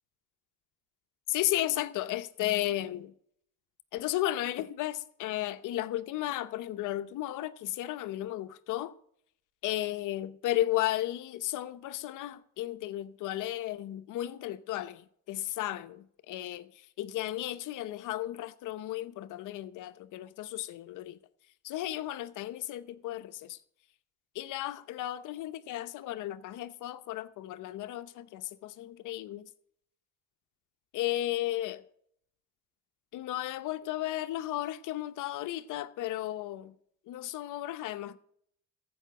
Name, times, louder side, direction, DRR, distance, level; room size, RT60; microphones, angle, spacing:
voice 1, 1.3-3.1 3.9-8.9 9.6-21.2 21.6-23.6 24.3-29.5 30.9-31.8 33.1-36.7 37.1-38.2, left 14 dB, 90° left, 0.9 m, -34 dB
14.5 x 5.7 x 7.6 m
cardioid pair, 90°, 30 cm